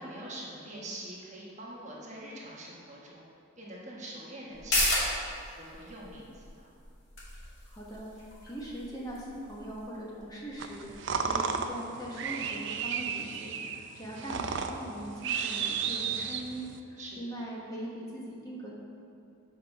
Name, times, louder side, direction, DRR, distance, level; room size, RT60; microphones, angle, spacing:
voice 1, 0.0-3.3 3.6-6.8 13.8-13.9 17.0-17.2, right 1 dB, 35° right, -4 dB, 1.2 m, -44 dB
sound 1, 4.5-11.6 12.0-12.1, left 1 dB, 55° left, 2.0 m, -35 dB
voice 2, 7.6-8.1 8.4-18.7, right 1 dB, 15° left, -5 dB, 1.3 m, -41 dB
sound 2, 10.6-16.8, right 6 dB, 55° right, 0.5 m, -33 dB
7.6 x 5.4 x 5.9 m, 2.5 s
head